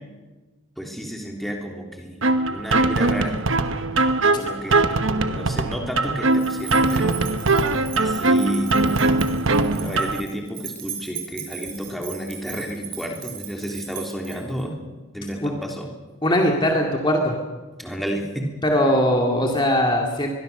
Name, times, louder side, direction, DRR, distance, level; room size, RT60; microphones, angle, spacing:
voice 1, 0.8-2.2 2.5-3.4 4.3-4.8 5.3-7.2 7.7-8.8 9.7-14.7 15.1-15.9 17.8-18.5, equal, ahead, 0 dB, 3.2 m, -31 dB
sound 1, 2.2-10.2, right 2 dB, 60° right, 1.2 m, -21 dB
sound 2, 6.3-14.6, right 9 dB, 40° right, 5.8 m, -38 dB
voice 2, 16.2-17.4 18.7-20.3, equal, 20° left, 1 dB, 2.4 m, -20 dB
23.0 x 23.0 x 6.8 m, 1.2 s
head